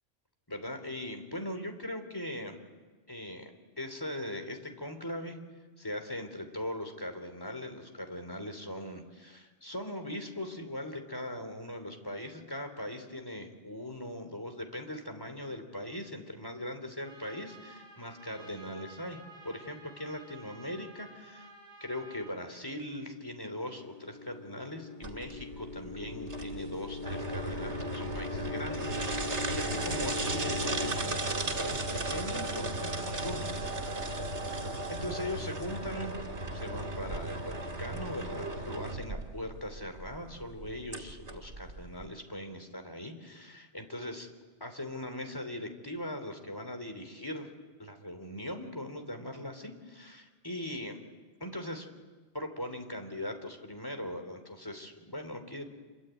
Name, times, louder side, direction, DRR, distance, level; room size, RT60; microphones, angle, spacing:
voice 1, 0.5-2.6 3.1-3.5 3.8-5.4 5.8-21.5 21.8-33.5 34.9-36.2 36.5-44.3 44.6-47.5 47.8-51.0 51.4-51.9 52.3-55.6, left 1 dB, 20° left, 6 dB, 3.5 m, -40 dB
Trumpet, 17.0-22.4, right 3 dB, 20° right, 6.6 m, -52 dB
sound 1, 23.6-30.9, left 3 dB, 80° left, 3.1 m, -40 dB
sound 2, 25.0-42.1, right 2 dB, 85° right, 2.7 m, -36 dB
27.5 x 23.0 x 9.3 m, 1.3 s
omnidirectional pair, 1.2 m